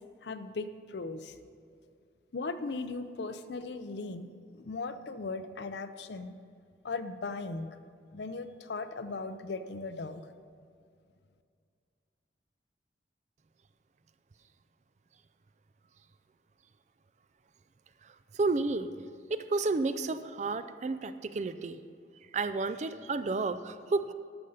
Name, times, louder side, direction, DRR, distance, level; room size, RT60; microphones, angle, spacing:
voice 1, 0.2-1.4 2.3-4.3 4.5-6.3 6.8-7.7 8.1-10.3, left 3 dB, 75° left, 11 dB, 0.6 m, -38 dB
voice 2, 18.3-18.9 19.3-21.8 22.3-24.1, right 3 dB, 40° right, 11 dB, 0.4 m, -31 dB
12.0 x 6.5 x 5.6 m, 2.3 s
head